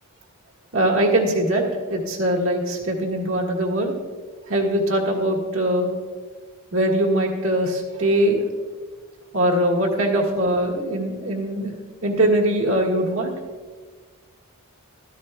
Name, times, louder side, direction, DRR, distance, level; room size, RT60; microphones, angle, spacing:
voice 1, 0.7-1.6 1.9-3.9 4.5-5.9 6.7-8.4 9.3-11.7 12.0-13.3, right 1 dB, 65° right, 1 dB, 1.6 m, -21 dB
13.5 x 13.0 x 2.3 m, 1.5 s
head